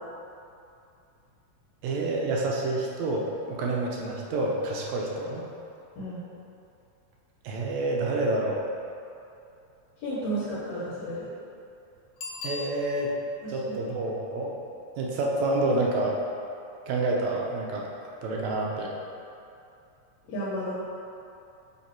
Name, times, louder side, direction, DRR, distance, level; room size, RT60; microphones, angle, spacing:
voice 1, 1.8-5.5 7.4-8.7 12.4-13.1 13.5-14.6 15.0-16.2 16.9-17.9 18.2-18.9, right 2 dB, 75° right, -2 dB, 1.9 m, -28 dB
voice 2, 10.0-11.3 13.4-13.8 20.3-20.7, right 1 dB, 70° left, -10 dB, 2.3 m, -32 dB
Bicycle bell, 12.2-13.3 18.8-18.9, left 3 dB, 85° left, 2.2 m, -39 dB
7.1 x 3.1 x 4.5 m, 2.7 s
omnidirectional pair, 3.4 m